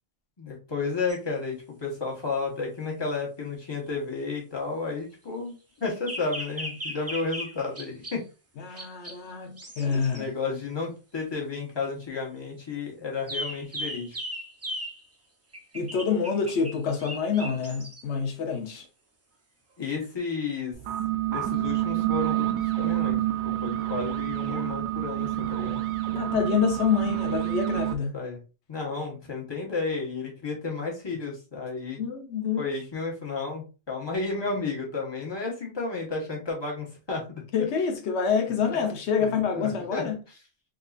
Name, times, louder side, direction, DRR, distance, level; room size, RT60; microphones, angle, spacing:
voice 1, 0.4-8.2 8.7-8.8 9.8-14.2 19.8-20.7 21.3-25.8 28.1-28.4 28.7-32.0 32.6-37.4 38.5-38.9 39.2-40.0, left 4 dB, 25° left, 1.2 m, -32 dB
sound 1, 1.1-1.2 6.1-8.2 8.8-9.2 9.6-10.2 13.3-15.0 15.5-18.0 19.9-20.0, equal, 25° right, 0.3 m, -37 dB
voice 2, 8.6-10.3 15.7-18.9 26.1-28.1 32.0-32.7 37.5-40.2, left 6 dB, 85° left, 1.0 m, -27 dB
sound 2, 20.7-28.0, right 14 dB, 85° right, 0.9 m, -28 dB
3.7 x 2.7 x 2.4 m
omnidirectional pair, 1.1 m